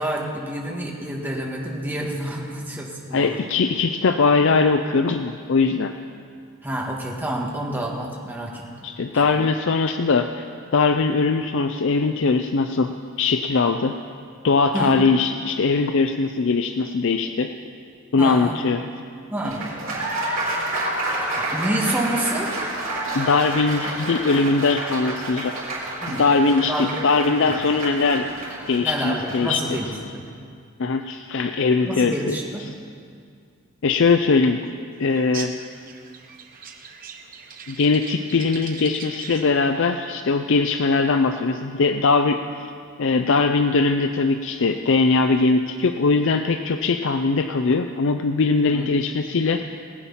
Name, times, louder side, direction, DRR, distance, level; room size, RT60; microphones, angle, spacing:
voice 1, 0.0-3.4 6.6-8.7 14.7-15.0 18.2-18.5 19.3-19.6 21.5-22.5 26.0-26.2 26.7-26.9 27.4-27.5 28.8-30.2 31.8-32.7 48.7-48.9, right 1 dB, 10° right, -2 dB, 1.8 m, -28 dB
voice 2, 3.1-5.9 8.8-10.5 10.7-12.9 13.2-13.9 14.4-17.5 18.1-18.8 23.1-25.6 26.1-28.3 28.7-29.6 30.8-32.3 33.8-34.7 35.0-35.5 37.7-42.7 43.0-49.6, left 4 dB, 60° left, 7 dB, 0.5 m, -20 dB
Applause, 19.4-29.8, right 1 dB, 65° right, 3.9 m, -29 dB
sound 1, 35.1-39.6, right 6 dB, 40° right, 1.0 m, -40 dB
19.5 x 8.7 x 5.6 m, 2.2 s
head